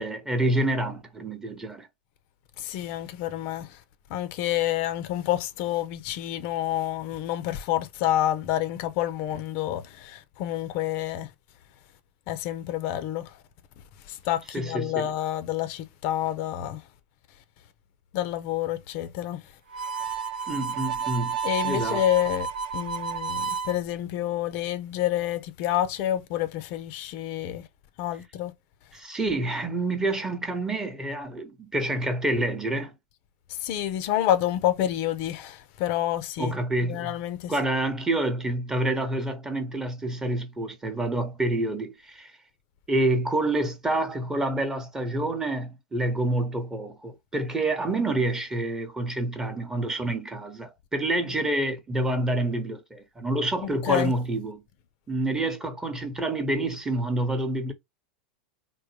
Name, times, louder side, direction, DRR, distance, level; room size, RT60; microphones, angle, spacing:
voice 1, 0.0-1.9 14.5-15.1 20.5-21.4 21.7-22.0 28.9-32.9 36.4-37.1 37.5-42.3 42.9-54.6 55.1-57.7, right 1 dB, 10° right, 0.9 m, -28 dB
voice 2, 2.6-3.8 4.1-11.3 12.3-13.4 14.0-16.8 18.1-19.5 21.4-27.6 28.0-28.5 33.5-37.5 53.6-54.1, left 12 dB, 50° left, 0.6 m, -28 dB
Harmonica, 19.7-23.8, right 6 dB, 70° right, 0.6 m, -31 dB
3.7 x 2.1 x 3.1 m
hypercardioid pair, 95°, 5 cm